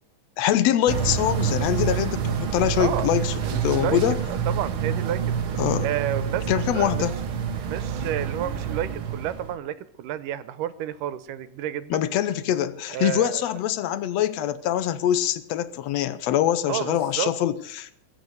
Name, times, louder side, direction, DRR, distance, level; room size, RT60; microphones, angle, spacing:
voice 1, 0.4-4.2 5.6-5.9 6.5-7.1 11.9-18.0, left 11 dB, 70° left, 14 dB, 1.7 m, -24 dB
sound 1, 0.9-9.6, right 7 dB, 55° right, 1.6 m, -27 dB
voice 2, 3.4-4.0 4.3-5.2 5.8-7.1 7.7-12.0 12.9-13.4 16.7-17.3, right 11 dB, 90° right, 14 dB, 2.5 m, -30 dB
21.0 x 7.2 x 8.1 m, 0.73 s
omnidirectional pair, 3.7 m